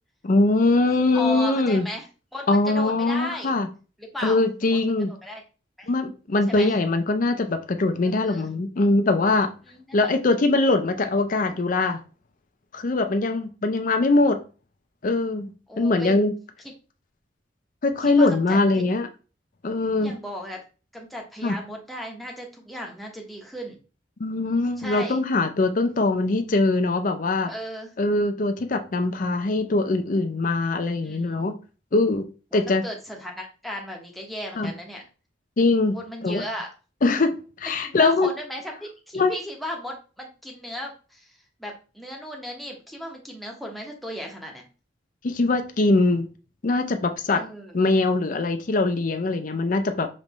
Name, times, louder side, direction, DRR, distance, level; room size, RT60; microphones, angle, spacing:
voice 1, 0.2-1.9 2.5-3.7 4.2-5.1 5.9-9.5 9.9-12.0 12.7-14.4 15.0-16.3 17.8-19.1 19.6-20.1 21.4-21.6 24.2-27.5 28.0-31.5 31.9-32.2 32.5-32.8 34.6-34.7 35.6-36.0 36.2-36.4 37.0-38.3 39.1-39.3 45.2-46.3 46.6-47.4 47.7-50.1, left 2 dB, 45° left, 0.5 m, -22 dB
voice 2, 1.0-2.1 2.3-3.5 4.0-4.4 4.7-5.4 5.8-5.9 6.5-6.7 8.0-8.5 9.7-10.1 15.7-16.1 16.6-16.7 18.0-18.8 20.0-20.6 20.9-23.8 24.8-25.2 27.4-27.9 31.0-31.4 32.5-35.0 35.9-36.7 37.8-41.3 41.6-44.6 47.3-47.8, equal, ahead, 0.9 m, -36 dB
5.2 x 3.2 x 3.0 m
head